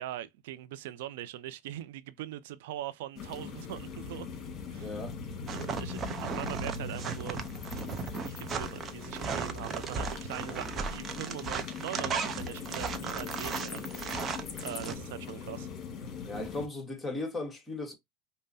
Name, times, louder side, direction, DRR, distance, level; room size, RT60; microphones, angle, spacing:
voice 1, 0.0-4.3 4.7-4.9 5.5-7.4 8.1-14.3 14.6-15.7, right 13 dB, 75° right, 0.5 m, -42 dB
sound 1, 3.2-16.7, left 5 dB, 40° left, 1.8 m, -41 dB
voice 2, 4.8-5.2 10.4-10.6 16.3-17.9, left 2 dB, 15° left, 1.4 m, -37 dB
sound 2, 5.5-14.9, right 5 dB, 35° right, 0.7 m, -36 dB
5.3 x 2.1 x 2.7 m
supercardioid pair, 105°, 0 cm